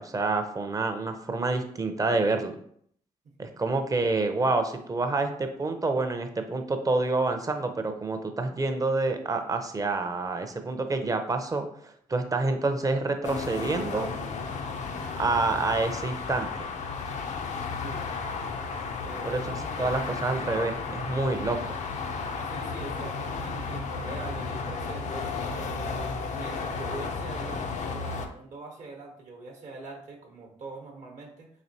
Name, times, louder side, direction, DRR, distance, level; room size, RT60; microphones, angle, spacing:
voice 1, 0.0-2.6 3.4-14.1 15.2-16.7 19.2-19.4 19.8-21.8, right 3 dB, 25° right, 6 dB, 0.6 m, -28 dB
sound 1, 13.2-28.3, left 4 dB, 60° left, 0.5 m, -33 dB
voice 2, 17.8-18.6 19.0-19.9 22.4-25.3 26.3-31.5, right 3 dB, 60° right, 1 dB, 1.0 m, -43 dB
4.1 x 2.8 x 2.7 m, 0.65 s
supercardioid pair, 60°, 14 cm